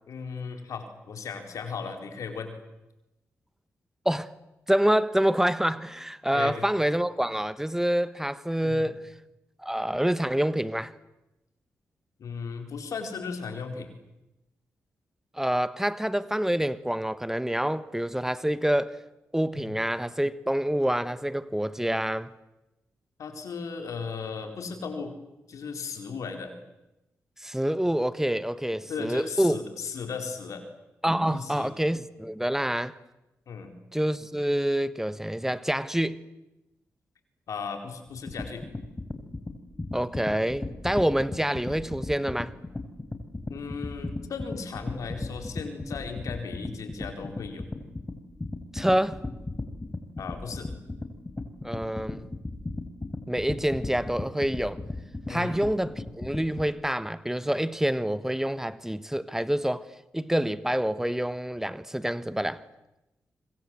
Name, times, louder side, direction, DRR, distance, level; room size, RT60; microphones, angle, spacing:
voice 1, 0.1-2.5 6.3-6.7 8.6-8.9 12.2-13.9 19.5-19.8 23.2-25.2 25.5-26.6 28.9-30.6 31.3-31.7 33.5-33.7 37.5-38.6 43.5-47.7 50.2-50.7 55.3-55.6, left 5 dB, 75° left, 4.2 m, -36 dB
voice 2, 4.7-9.0 9.6-10.9 15.3-19.0 19.3-22.3 27.4-29.6 31.0-33.0 33.9-36.2 39.9-42.5 48.7-49.2 51.6-52.3 53.3-54.8 55.3-59.9 60.1-62.6, right 1 dB, 5° right, 1.3 m, -27 dB
sound 1, 38.1-56.7, left 2 dB, 25° left, 4.0 m, -36 dB
26.5 x 24.5 x 7.9 m
supercardioid pair, 45°, 6 cm